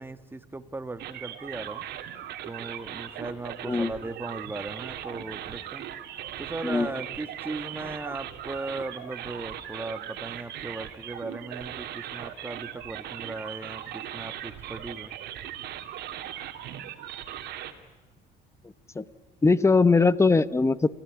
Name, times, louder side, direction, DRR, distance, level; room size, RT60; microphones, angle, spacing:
voice 1, 0.0-1.8 2.4-5.9 6.4-15.1, right 3 dB, 15° right, 10 dB, 1.5 m, -37 dB
sound 1, 1.0-17.7, right 11 dB, 75° right, 2.6 m, -39 dB
voice 2, 19.4-20.9, left 4 dB, 15° left, 16 dB, 1.0 m, -20 dB
30.0 x 15.5 x 10.0 m, 1.4 s
cardioid pair, 110°, 17 cm